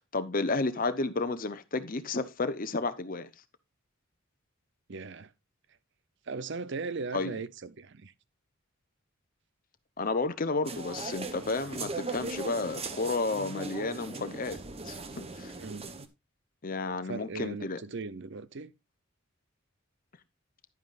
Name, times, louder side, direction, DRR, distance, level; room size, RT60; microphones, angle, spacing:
voice 1, 0.1-3.3 7.1-7.4 10.0-14.6 14.8-15.5 16.6-17.8, left 3 dB, 40° left, 0.9 m, -32 dB
voice 2, 4.9-5.3 6.3-8.1 15.6-15.9 17.0-18.7, right 4 dB, 60° right, 0.6 m, -38 dB
sound 1, 10.6-16.1, right 3 dB, 30° right, 0.9 m, -39 dB
11.0 x 9.4 x 2.5 m
head